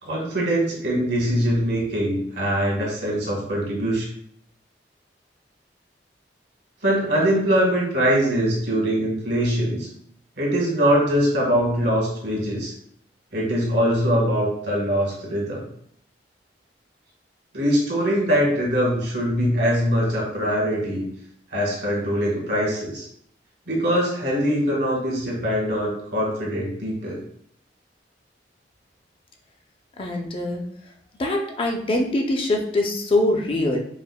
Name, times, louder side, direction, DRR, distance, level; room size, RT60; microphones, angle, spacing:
voice 1, 0.0-4.0 6.8-9.9 10.4-12.7 13.3-15.6 17.5-21.1 21.5-23.1 23.7-27.2, equal, 65° right, -3 dB, 1.3 m, -22 dB
voice 2, 30.0-30.6 31.2-33.8, left 1 dB, 30° left, 2 dB, 0.4 m, -23 dB
4.7 x 2.1 x 2.2 m, 0.66 s
head